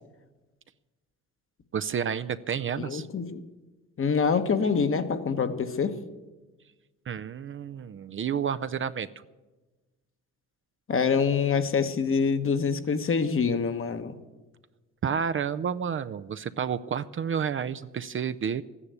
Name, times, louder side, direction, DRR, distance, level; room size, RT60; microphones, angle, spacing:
voice 1, 1.7-3.1 7.1-9.1 15.0-18.6, right 7 dB, 40° right, 12 dB, 0.5 m, -30 dB
voice 2, 2.8-3.4 4.0-6.0 10.9-14.1, left 5 dB, 40° left, 9 dB, 1.2 m, -25 dB
13.5 x 10.0 x 8.1 m, 1.2 s
supercardioid pair, 70°, 32 cm